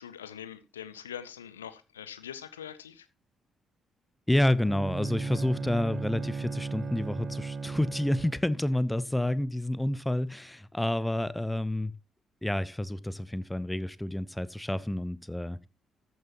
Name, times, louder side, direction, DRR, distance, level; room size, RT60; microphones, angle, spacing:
voice 1, 0.0-3.1, left 9 dB, 80° left, 0.6 m, -43 dB
voice 2, 4.3-11.9 12.4-15.7, left 1 dB, 10° left, 0.8 m, -29 dB
Bowed string instrument, 4.5-8.6, right 4 dB, 45° right, 0.8 m, -36 dB
14.0 x 9.9 x 2.9 m
figure-of-eight pair, 40°, 0 cm